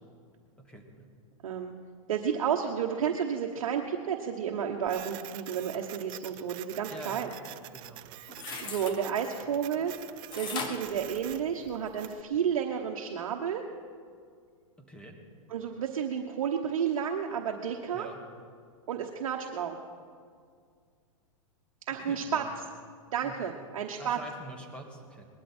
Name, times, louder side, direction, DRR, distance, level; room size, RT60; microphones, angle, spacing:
voice 1, 1.4-1.7 2.1-7.3 8.6-9.9 10.4-13.6 15.5-18.1 18.9-19.8 21.9-22.4 23.1-24.2, right 8 dB, 70° right, 1 dB, 1.2 m, -31 dB
Printer, 4.9-12.2, right 16 dB, 30° right, 0.4 m, -46 dB
voice 2, 6.9-7.3 7.7-8.1 14.9-15.2 17.9-18.2 22.0-22.5 23.2-23.4 24.0-25.3, right 1 dB, 5° left, 1 dB, 1.8 m, -45 dB
sound 1, 8.0-9.0 10.3-11.9 12.3-12.4, left 5 dB, 25° left, 1.4 m, -38 dB
20.5 x 12.0 x 4.5 m, 2.1 s
hypercardioid pair, 140°, 18 cm